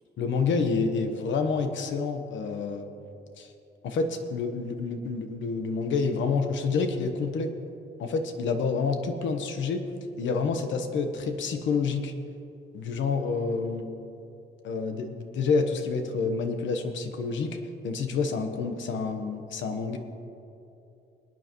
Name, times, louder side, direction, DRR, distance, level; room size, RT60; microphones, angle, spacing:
voice 1, 0.2-2.9 3.4-3.5 3.8-7.5 8.0-9.8 10.2-12.1 12.7-13.9 14.6-17.6 17.8-20.0, left 4 dB, 70° left, 6 dB, 1.1 m, -28 dB
26.0 x 9.1 x 3.1 m, 2.8 s
cardioid pair, 170°, 20 cm